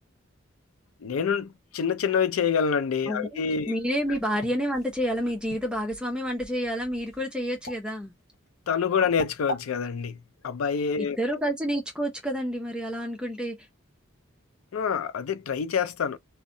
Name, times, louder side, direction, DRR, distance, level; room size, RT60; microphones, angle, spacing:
voice 1, 1.0-3.7 8.7-10.2 10.4-11.2 14.7-16.2, left 6 dB, 90° left, 0.4 m, -26 dB
voice 2, 3.1-8.1 11.0-13.6, equal, 5° right, 0.6 m, -29 dB
sound 1, 3.3-9.6, equal, 45° left, 0.9 m, -42 dB
2.7 x 2.1 x 2.6 m
head